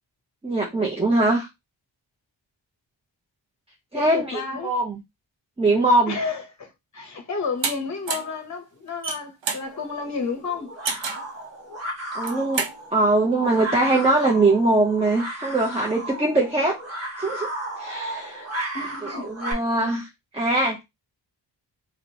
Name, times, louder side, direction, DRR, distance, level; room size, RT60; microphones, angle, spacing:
voice 1, 0.4-1.5 3.9-5.0 5.6-6.2 12.1-12.6 12.9-16.8 17.2-17.5 17.8-18.5 19.3-20.1 20.3-20.8, right 2 dB, 15° right, 0.6 m, -21 dB
voice 2, 3.9-4.7 6.1-10.7 18.7-19.3, left 4 dB, 40° left, 0.7 m, -31 dB
sound 1, 7.6-7.7 8.1-8.4 8.9-9.7 10.9-11.3 12.1-12.8, right 5 dB, 70° right, 0.7 m, -28 dB
sound 2, 9.7-19.5, right 1 dB, 30° right, 1.5 m, -34 dB
3.1 x 2.8 x 2.8 m
wide cardioid pair, 85°, 46 cm